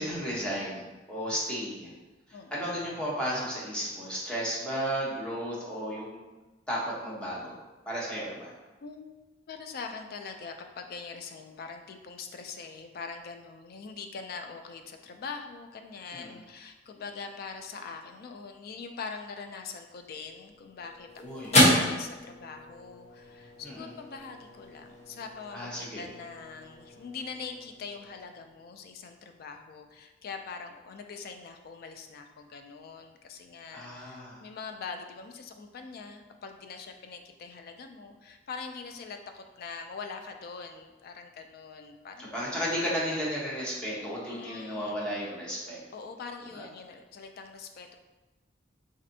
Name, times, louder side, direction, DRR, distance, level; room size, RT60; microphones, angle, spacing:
voice 1, 0.0-1.9 2.5-6.3 6.7-7.6 7.9-8.5 16.1-16.4 21.2-21.5 23.6-23.9 25.5-26.0 33.7-34.4 42.2-45.8 46.5-46.7, equal, 5° left, -7 dB, 0.9 m, -34 dB
voice 2, 8.8-9.1 9.5-21.1 21.3-42.6 44.2-45.3 45.9-48.0, left 5 dB, 55° left, 6 dB, 0.3 m, -43 dB
sound 1, 20.2-28.8, left 1 dB, 40° left, 0.9 m, -31 dB
4.1 x 2.6 x 2.6 m, 1.2 s
head